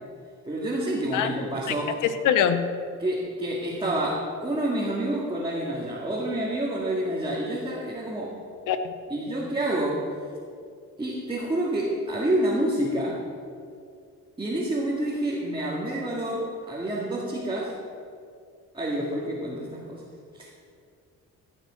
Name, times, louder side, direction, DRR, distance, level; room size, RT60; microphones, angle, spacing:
voice 1, 0.5-2.0 3.0-8.4 9.1-10.1 11.0-13.2 14.4-17.7 18.7-20.0 20.3-20.5, right 1 dB, 15° right, -5 dB, 2.2 m, -28 dB
voice 2, 2.0-2.6 8.7-8.9, left 9 dB, 90° left, 10 dB, 0.9 m, -23 dB
16.0 x 6.7 x 6.4 m, 2.3 s
cardioid pair, 90°, 30 cm